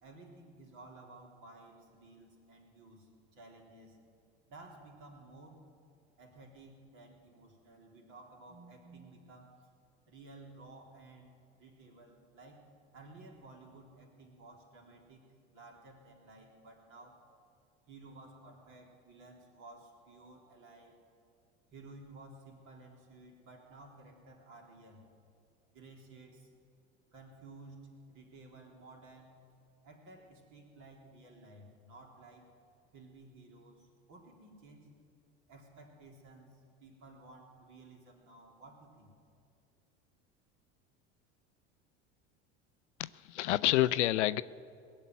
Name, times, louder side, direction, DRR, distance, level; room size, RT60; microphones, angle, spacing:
voice 1, 0.0-4.0 4.5-5.6 6.2-9.7 10.1-12.7 12.9-15.3 15.5-17.2 17.9-21.0 21.7-25.0 25.7-26.5 27.1-29.4 29.8-32.5 32.9-34.9 35.5-39.1, right 2 dB, 55° right, 0 dB, 3.6 m, -55 dB
voice 2, 43.0-44.4, left 15 dB, 85° left, 17 dB, 0.5 m, -28 dB
19.0 x 7.3 x 9.3 m, 2.4 s
hypercardioid pair, 85°, 34 cm